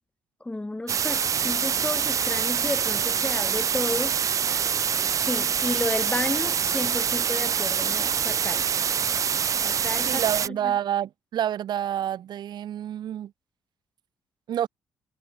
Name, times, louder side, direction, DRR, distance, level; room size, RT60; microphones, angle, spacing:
voice 1, 0.4-4.2 5.2-8.6 9.6-10.7, left 2 dB, 15° left, 1.2 m, -32 dB
sound 1, 0.9-10.5, right 7 dB, 45° right, 0.4 m, -25 dB
voice 2, 10.0-13.3 14.5-14.7, right 10 dB, 65° right, 1.6 m, -28 dB
hypercardioid pair, 50°, 8 cm